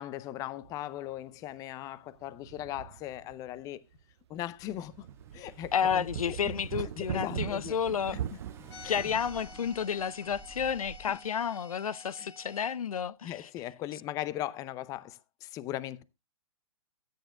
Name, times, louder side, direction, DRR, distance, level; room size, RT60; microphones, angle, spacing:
voice 1, 0.0-3.8 4.3-5.1 5.3-6.5 7.0-7.8 8.1-8.2 8.6-9.1 11.1-11.2 12.2-12.3 13.2-16.0, left 13 dB, 20° left, 0.5 m, -39 dB
sound 1, 0.6-0.8 1.1-1.2 2.2-3.6 4.0-4.1 4.6-9.3, right 11 dB, 45° right, 0.5 m, -40 dB
Car / Engine, 4.4-11.3, right 3 dB, 15° right, 1.5 m, -54 dB
voice 2, 5.7-8.2 8.8-13.5, left 7 dB, 75° left, 0.6 m, -31 dB
sound 2, 8.7-12.7, left 3 dB, 45° left, 2.3 m, -50 dB
14.0 x 9.3 x 2.3 m
figure-of-eight pair, 130°, 19 cm